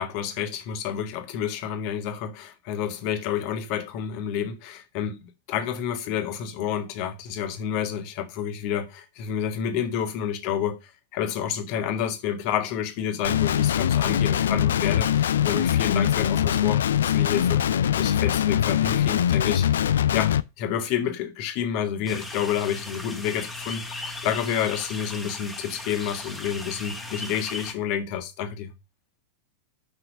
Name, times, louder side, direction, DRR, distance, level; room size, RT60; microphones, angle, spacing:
voice 1, 0.0-17.6 18.0-19.8 20.1-28.7, left 9 dB, 45° left, 1.7 m, -29 dB
Guitar, 13.2-20.4, left 10 dB, 65° left, 0.4 m, -22 dB
sound 1, 22.1-27.7, left 2 dB, 5° left, 1.8 m, -37 dB
6.2 x 5.9 x 6.6 m
figure-of-eight pair, 90°, 0 cm